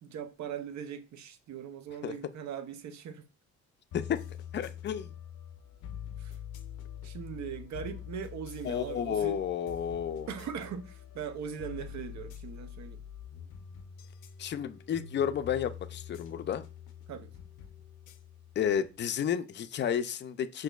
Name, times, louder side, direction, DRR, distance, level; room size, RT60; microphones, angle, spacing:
voice 1, 0.0-3.2 6.2-6.4 7.0-9.4 10.3-13.0 17.1-17.3, right 7 dB, 65° right, 0.7 m, -40 dB
sound 1, 3.9-19.2, left 9 dB, 85° left, 0.6 m, -45 dB
voice 2, 4.5-5.1 8.7-10.3 14.4-16.6 18.6-20.6, left 9 dB, 40° left, 0.4 m, -31 dB
5.9 x 2.7 x 2.3 m
cardioid pair, 90°, 30 cm